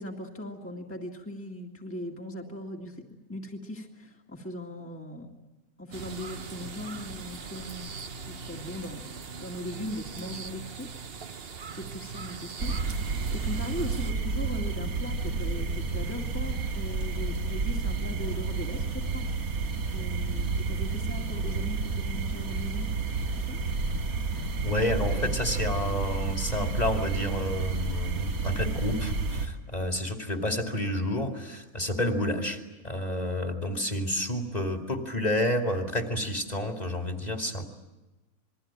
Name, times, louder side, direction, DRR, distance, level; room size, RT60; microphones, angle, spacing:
voice 1, 0.0-5.4 5.8-9.1 9.4-10.9 11.2-19.3 19.9-22.9 23.2-23.6 25.1-25.4 33.7-33.8, left 1 dB, 10° left, 0 dB, 2.2 m, -39 dB
sound 1, 5.9-14.1, right 5 dB, 45° right, 1.2 m, -41 dB
sound 2, 12.6-29.5, right 4 dB, 85° right, 2.4 m, -30 dB
voice 2, 24.6-37.7, left 1 dB, 30° left, 4 dB, 2.7 m, -30 dB
28.0 x 22.0 x 8.8 m, 1.1 s
omnidirectional pair, 1.5 m